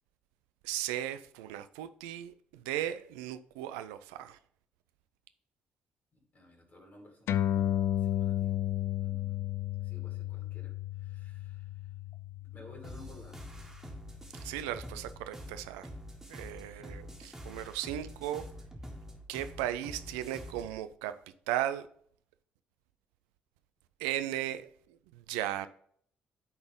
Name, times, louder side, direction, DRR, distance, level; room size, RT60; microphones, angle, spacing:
voice 1, 0.6-4.4 14.4-15.9 16.3-17.0 17.4-18.5 19.3-21.2 21.5-21.9 24.0-24.7 25.1-25.7, right 12 dB, 70° right, 0.4 m, -36 dB
voice 2, 6.1-8.6 8.9-9.5 9.8-11.9 12.4-13.4 16.7-17.0, left 1 dB, 40° left, 3.0 m, -55 dB
sound 1, 7.3-14.1, left 12 dB, 60° left, 0.5 m, -33 dB
sound 2, 12.8-20.7, equal, 10° right, 1.8 m, -46 dB
10.5 x 3.9 x 3.7 m
figure-of-eight pair, 45°, 5 cm